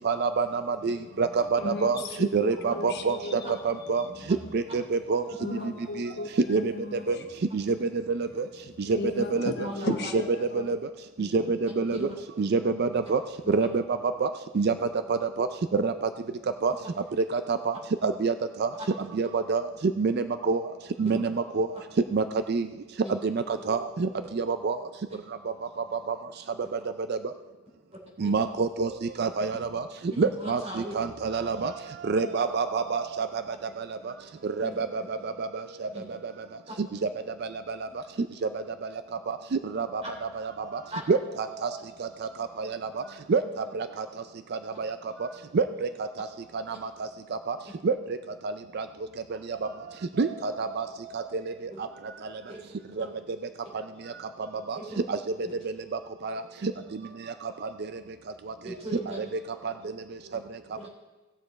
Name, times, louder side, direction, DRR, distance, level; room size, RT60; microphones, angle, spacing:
voice 1, 0.0-2.0 2.3-4.0 4.5-5.2 6.0-6.1 6.5-6.7 7.1-7.2 7.5-7.9 8.1-8.3 8.9-9.5 10.1-10.2 10.5-10.8 11.2-12.0 12.4-13.2 13.5-13.8 14.2-14.3 14.5-14.7 15.1-15.5 15.7-15.9 16.6-16.7 17.3-17.7 18.0-18.3 18.6-18.7 19.2-19.6 20.0-20.6 21.0-21.7 22.1-22.7 23.2-24.8 27.1-27.2 28.2-28.9 29.2-29.8 30.2-30.6 30.9-31.7 32.0-33.4 33.8-33.9 34.6-35.5 35.8-35.9 39.3-39.4 39.7-40.0 40.4-40.8 41.1-42.1 42.6-42.8 43.3-43.4 43.7-43.9 44.8-44.9 45.5-45.9 46.2-46.3 47.5-47.6 47.8-47.9 48.7-48.8 50.2-50.9 51.1-51.2 53.0-53.1 54.7-54.8 55.1-55.2 56.2-56.7 59.2-59.3, right 4 dB, 50° right, 9 dB, 0.4 m, -26 dB
voice 2, 0.9-4.3 5.4-7.2 8.6-10.8, left 3 dB, 50° left, 5 dB, 1.0 m, -37 dB
voice 3, 9.6-10.1 11.2-11.5 11.9-12.1 13.4-13.5 21.0-21.2 23.0-23.1 28.2-28.3 30.1-30.9 34.6-34.8 35.9-36.0 36.7-36.8 40.0-40.1 40.9-41.0 51.7-51.8 52.5-52.6 53.0-53.1 54.7-55.0 55.4-55.5 58.6-59.3, right 1 dB, 30° right, -3 dB, 3.4 m, -38 dB
17.5 x 6.6 x 4.1 m, 1.2 s
head